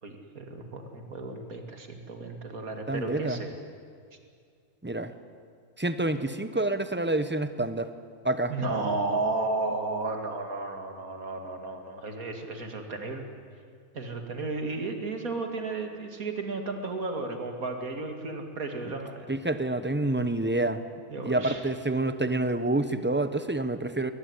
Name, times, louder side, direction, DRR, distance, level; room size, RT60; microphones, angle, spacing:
voice 1, 0.0-3.5 8.5-13.3 13.9-19.3 21.1-21.6, right 3 dB, 65° right, 5 dB, 2.9 m, -33 dB
voice 2, 2.9-3.4 4.8-5.1 5.8-7.9 8.2-8.5 19.3-20.8 21.2-24.1, right 2 dB, 10° right, 11 dB, 0.8 m, -28 dB
21.5 x 20.0 x 9.8 m, 2.2 s
omnidirectional pair, 1.6 m